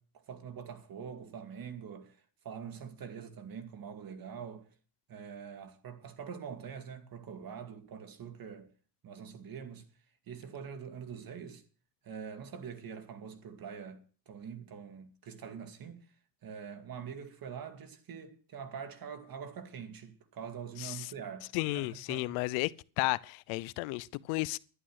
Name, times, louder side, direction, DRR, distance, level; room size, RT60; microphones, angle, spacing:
voice 1, 0.0-2.2 2.4-4.7 5.1-8.7 9.0-9.8 10.3-11.6 12.0-16.0 16.4-22.4, right 7 dB, 45° right, 2.4 m, -44 dB
voice 2, 21.5-22.7 23.0-24.6, left 22 dB, 85° left, 0.7 m, -33 dB
11.5 x 11.5 x 6.4 m
supercardioid pair, 100°, 48 cm